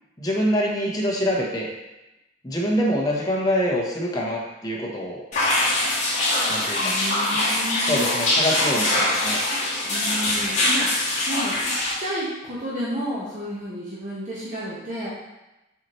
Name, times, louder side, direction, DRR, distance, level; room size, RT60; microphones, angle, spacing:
voice 1, 0.2-1.7 2.4-5.2 6.5-7.0 7.8-9.4, equal, 20° left, -3 dB, 0.9 m, -25 dB
sound 1, 5.3-11.9, left 1 dB, 35° left, 1.7 m, -23 dB
voice 2, 6.8-8.1 9.9-15.1, equal, 35° right, -8 dB, 1.2 m, -31 dB
7.2 x 4.3 x 3.1 m, 0.98 s
head